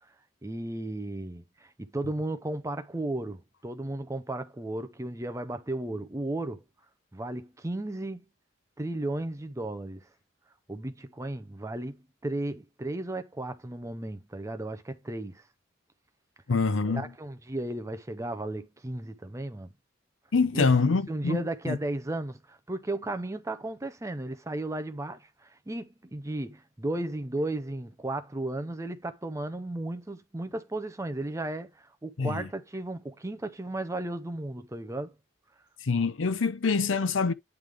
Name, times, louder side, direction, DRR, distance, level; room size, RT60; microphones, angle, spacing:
voice 1, 0.4-6.6 7.1-8.2 8.8-10.1 10.7-15.4 16.8-19.7 20.5-35.1, right 1 dB, 15° right, 0.6 m, -35 dB
voice 2, 16.5-17.1 20.3-21.8 32.2-32.5 35.8-37.3, left 4 dB, 80° left, 0.6 m, -25 dB
9.3 x 3.3 x 3.4 m
head